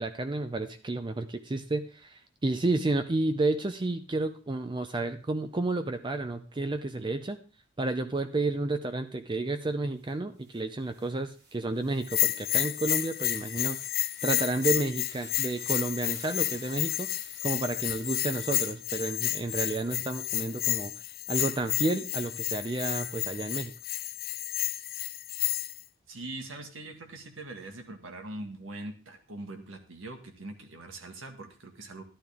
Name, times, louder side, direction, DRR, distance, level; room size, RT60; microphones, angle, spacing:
voice 1, 0.0-7.4 7.8-13.8 14.2-17.1 17.4-20.9 21.3-23.7, right 2 dB, 25° right, 8 dB, 0.5 m, -31 dB
sound 1, 9.6-9.7 10.0-20.3, right 2 dB, 55° right, 3.9 m, -55 dB
Bell, 12.1-25.8, left 15 dB, 50° left, 0.5 m, -31 dB
voice 2, 26.1-32.0, right 2 dB, 75° right, 4 dB, 1.7 m, -42 dB
12.0 x 11.5 x 3.5 m, 0.37 s
head